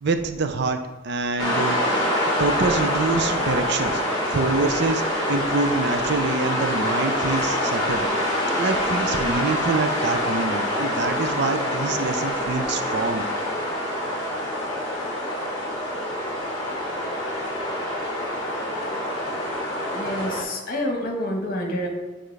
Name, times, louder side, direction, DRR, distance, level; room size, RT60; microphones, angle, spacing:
voice 1, 0.0-4.0 4.3-8.0 8.6-13.2, right 3 dB, 60° right, 8 dB, 0.5 m, -26 dB
sound 1, 1.4-20.4, left 1 dB, 20° left, 1.5 m, -25 dB
voice 2, 19.9-21.9, left 1 dB, 50° left, 2 dB, 1.2 m, -28 dB
8.8 x 3.8 x 3.2 m, 1.2 s
head